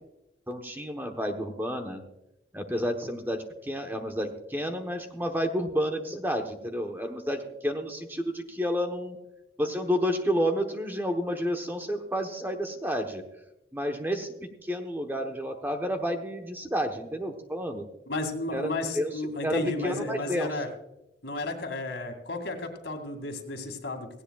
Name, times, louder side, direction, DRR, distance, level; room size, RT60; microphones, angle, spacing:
voice 1, 0.5-2.0 2.5-9.2 9.6-13.2 13.7-17.9 18.5-20.6, equal, 10° right, 4 dB, 1.0 m, -30 dB
voice 2, 18.1-20.7 21.2-24.1, left 2 dB, 75° left, 5 dB, 2.3 m, -33 dB
17.5 x 16.5 x 2.4 m, 0.90 s
head